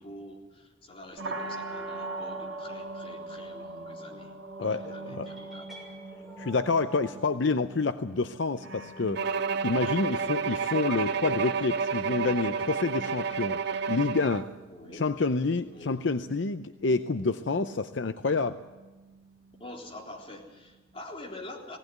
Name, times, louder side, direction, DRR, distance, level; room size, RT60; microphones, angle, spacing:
voice 1, 0.0-4.3 4.6-5.7 14.7-15.0 15.7-16.0 17.6-17.8 19.6-21.8, left 1 dB, 30° left, -2 dB, 3.8 m, -45 dB
sound 1, 1.2-21.0, right 2 dB, 80° right, 2.2 m, -44 dB
voice 2, 4.6-5.3 6.4-9.3 9.6-13.6 13.9-14.5 14.9-18.6, left 3 dB, 65° left, 10 dB, 0.6 m, -28 dB
sound 2, 5.2-7.2, right 1 dB, ahead, 6.6 m, -49 dB
Bowed string instrument, 9.1-14.5, right 5 dB, 55° right, 0.6 m, -30 dB
19.5 x 17.5 x 9.3 m, 1.2 s
head